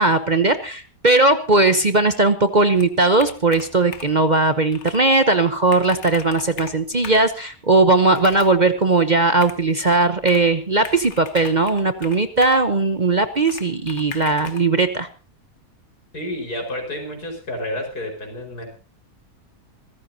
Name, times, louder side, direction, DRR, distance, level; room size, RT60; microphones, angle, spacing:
voice 1, 0.0-15.1, right 3 dB, 35° right, 10 dB, 0.9 m, -18 dB
Computer keyboard, 2.7-4.3 4.7-5.0 5.4-5.5 5.7-7.3 8.1-8.6 9.4-10.5 10.8-12.7 13.5-14.7, left 6 dB, 50° left, 1.5 m, -38 dB
voice 2, 16.1-18.6, left 1 dB, 80° left, 3 dB, 5.6 m, -30 dB
26.0 x 14.5 x 2.8 m, 0.33 s
omnidirectional pair, 1.6 m